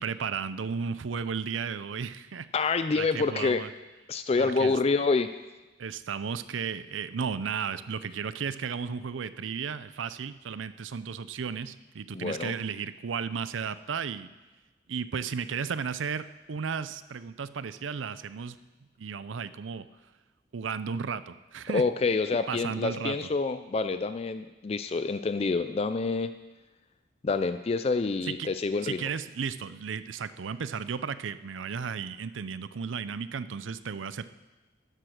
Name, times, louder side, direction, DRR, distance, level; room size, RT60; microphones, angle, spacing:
voice 1, 0.0-2.5 3.0-3.7 4.3-4.8 5.8-14.3 14.9-18.6 19.0-19.9 20.5-21.8 22.5-23.2 28.3-28.5 28.8-34.2, right 6 dB, 85° right, 14 dB, 0.5 m, -34 dB
voice 2, 2.5-3.6 4.1-5.3 12.1-12.5 21.7-26.3 27.2-29.1, left 4 dB, 30° left, 11 dB, 0.3 m, -27 dB
11.5 x 7.5 x 6.4 m, 1.1 s
head